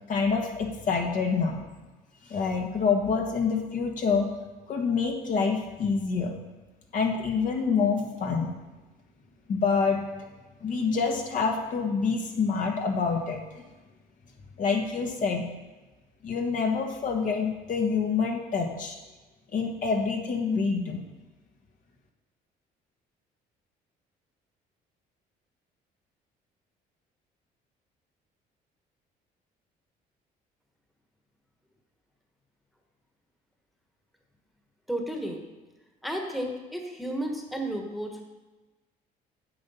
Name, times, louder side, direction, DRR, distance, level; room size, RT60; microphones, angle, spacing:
voice 1, 0.1-1.6 2.3-4.3 4.7-6.3 6.9-8.5 9.5-10.0 10.6-13.4 14.6-15.4 16.2-19.0 19.5-21.0, left 5 dB, 50° left, 2 dB, 1.5 m, -26 dB
voice 2, 34.9-35.4 36.0-38.2, right 1 dB, ahead, 1 dB, 1.4 m, -32 dB
7.7 x 7.2 x 5.6 m, 1.2 s
cardioid pair, 110°, 17 cm